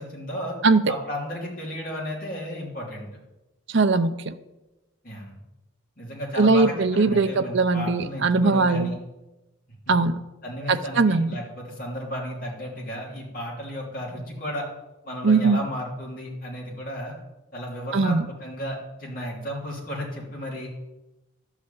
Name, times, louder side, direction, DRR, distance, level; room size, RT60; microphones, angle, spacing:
voice 1, 0.0-0.6 0.9-3.1 5.0-5.4 6.0-9.0 10.4-14.6 15.0-17.2 17.5-20.7, equal, 45° left, -3 dB, 3.1 m, -33 dB
voice 2, 3.7-4.3 6.4-8.9 9.9-10.1 10.7-11.4 15.2-15.6 17.9-18.2, right 3 dB, 60° right, 10 dB, 0.6 m, -20 dB
11.5 x 4.9 x 8.5 m, 1.0 s
head